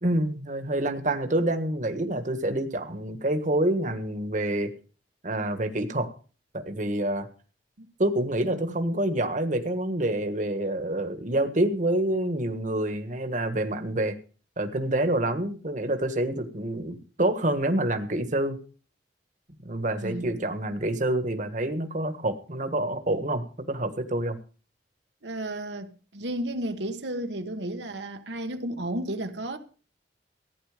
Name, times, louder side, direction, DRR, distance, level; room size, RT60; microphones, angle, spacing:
voice 1, 0.0-4.7 5.2-6.1 6.5-7.3 8.0-14.1 14.6-18.6 19.6-24.4, right 1 dB, 45° right, 1.6 m, -27 dB
voice 2, 8.4-8.8 20.0-20.4 25.2-29.6, right 1 dB, 75° right, 1.3 m, -33 dB
15.5 x 10.0 x 5.0 m
head